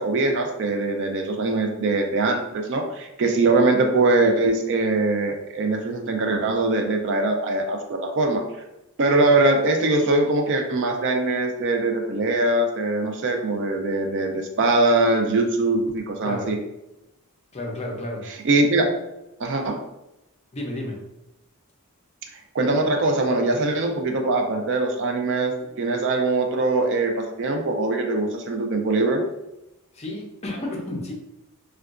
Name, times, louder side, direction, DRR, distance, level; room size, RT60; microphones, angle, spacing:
voice 1, 0.0-8.4 9.0-16.6 18.4-18.8 19.4-19.8 22.5-29.2, right 2 dB, 55° right, 3 dB, 0.4 m, -22 dB
voice 2, 17.5-18.3 20.5-21.0 29.9-31.1, left 1 dB, 30° left, 0 dB, 0.5 m, -31 dB
3.6 x 2.2 x 2.4 m, 0.93 s
head